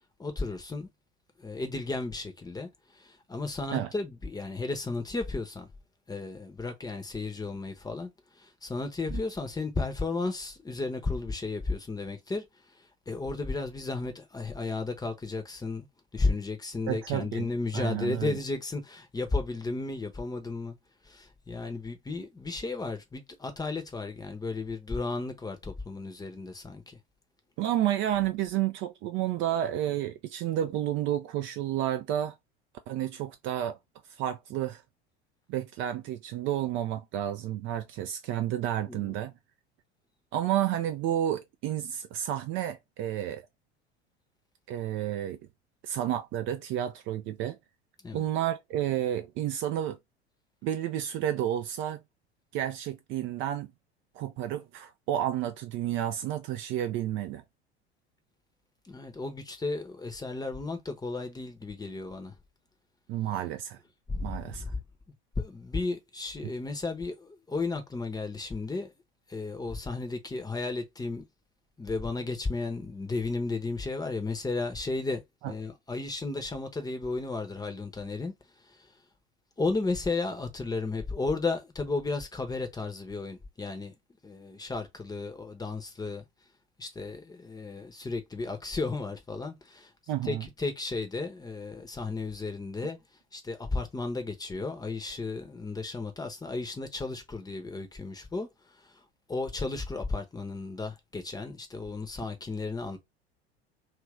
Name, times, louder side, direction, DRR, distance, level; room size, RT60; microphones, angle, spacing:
voice 1, 0.2-0.9 1.4-2.7 2.9-5.7 6.1-8.1 8.4-12.4 13.1-15.9 16.1-20.8 21.1-27.0 38.9-39.2 48.0-48.2 58.9-62.3 64.1-64.8 65.4-68.9 69.3-71.2 71.8-78.3 79.6-83.9 84.2-86.2 86.8-89.9 90.2-93.0 93.3-98.5 99.3-103.0, left 3 dB, 10° left, 0.8 m, -34 dB
voice 2, 16.9-17.5 17.7-18.4 27.6-32.3 32.9-33.8 34.1-34.8 35.5-39.3 40.3-43.4 44.7-45.4 45.8-47.6 48.1-50.0 50.6-52.0 52.5-53.7 54.2-57.4 63.1-63.8 64.2-64.6 75.4-75.5 90.1-90.4, right 11 dB, 35° right, 0.4 m, -31 dB
3.0 x 2.5 x 3.0 m
figure-of-eight pair, 75°, 34 cm